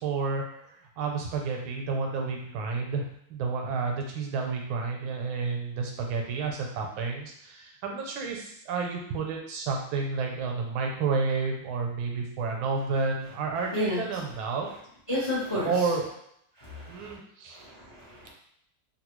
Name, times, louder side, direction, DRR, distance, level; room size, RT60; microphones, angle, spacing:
voice 1, 0.0-14.7 15.6-16.0 16.9-17.6, right 4 dB, 85° right, 1 dB, 1.5 m, -30 dB
voice 2, 15.1-15.7 16.6-17.1 17.5-18.3, left 1 dB, 30° left, -8 dB, 0.6 m, -31 dB
3.6 x 2.4 x 3.0 m, 0.71 s
omnidirectional pair, 2.2 m